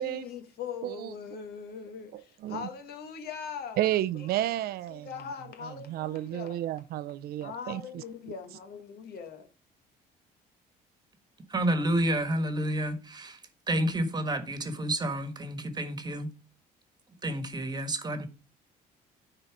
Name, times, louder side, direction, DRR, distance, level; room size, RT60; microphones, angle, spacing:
voice 1, 0.0-3.8 4.2-4.5 4.9-6.6 7.4-9.5, left 6 dB, 70° left, 1.4 m, -41 dB
voice 2, 0.8-1.1 2.1-2.7 3.8-5.1 5.6-8.0, right 13 dB, 65° right, 0.5 m, -32 dB
voice 3, 11.5-13.4 13.7-16.3 17.2-18.3, right 1 dB, 25° right, 1.4 m, -29 dB
9.8 x 4.0 x 4.7 m
cardioid pair, 110°, 17 cm